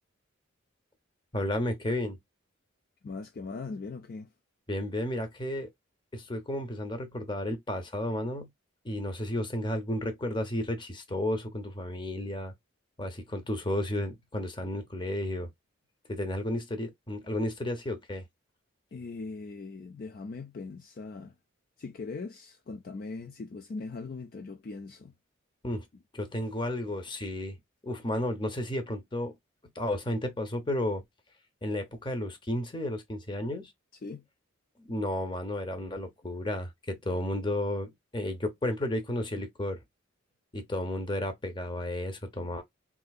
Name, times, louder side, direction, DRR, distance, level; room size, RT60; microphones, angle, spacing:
voice 1, 1.3-2.2 4.7-5.7 6.1-8.5 8.8-12.5 13.0-15.5 16.1-18.2 25.6-25.9 26.1-29.3 29.8-31.0 31.6-33.7 34.8-39.8 40.5-42.6, left 1 dB, 20° left, 0.8 m, -32 dB
voice 2, 3.0-4.3 18.9-21.3 21.8-25.1 34.0-34.2, left 3 dB, 45° left, 0.4 m, -40 dB
3.7 x 2.7 x 2.3 m
head